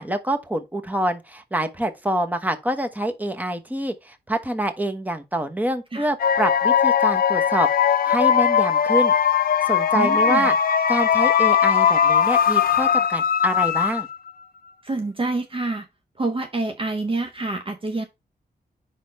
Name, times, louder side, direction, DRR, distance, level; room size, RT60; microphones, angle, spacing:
voice 1, 0.0-7.7 8.0-9.1 9.7-10.5 10.9-14.1, right 1 dB, 10° right, 1.1 m, -26 dB
sound 1, 6.2-14.3, left 8 dB, 60° left, 0.5 m, -19 dB
voice 2, 9.9-10.5 14.8-15.9 16.2-18.0, right 2 dB, 30° right, 0.7 m, -27 dB
5.3 x 4.1 x 5.2 m
wide cardioid pair, 105°, 17 cm